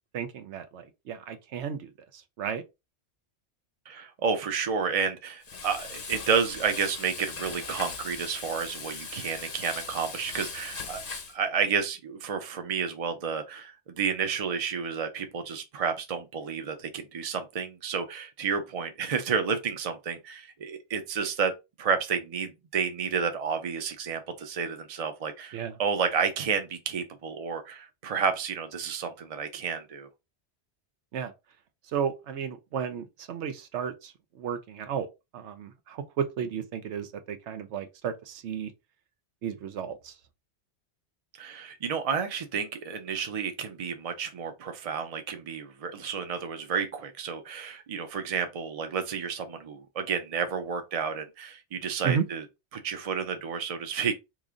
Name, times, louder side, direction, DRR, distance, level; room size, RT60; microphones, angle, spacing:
voice 1, 0.1-2.6 25.5-25.8 31.1-31.3 31.8-35.1 35.3-38.7 39.4-40.2 52.0-52.3, right 7 dB, 85° right, 0.9 m, -33 dB
voice 2, 3.9-11.0 11.3-21.5 21.8-30.1 41.4-52.4 52.7-54.1, right 6 dB, 40° right, 0.6 m, -31 dB
Frying (food), 5.4-11.3, left 4 dB, 55° left, 1.0 m, -39 dB
3.1 x 2.5 x 3.6 m
omnidirectional pair, 1.1 m